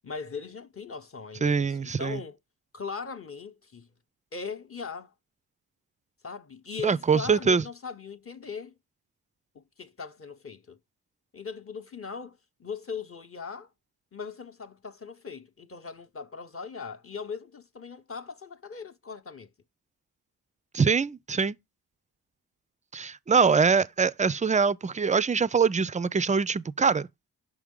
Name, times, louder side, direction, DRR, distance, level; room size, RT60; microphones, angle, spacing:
voice 1, 0.0-2.4 2.7-3.9 4.3-5.1 6.2-8.7 9.5-10.8 11.3-13.7 14.1-19.5, left 5 dB, 35° left, 0.7 m, -39 dB
voice 2, 1.4-2.2 6.8-7.6 20.7-21.6 22.9-27.1, right 5 dB, 20° right, 0.3 m, -23 dB
6.2 x 4.8 x 3.6 m
cardioid pair, 60°, 41 cm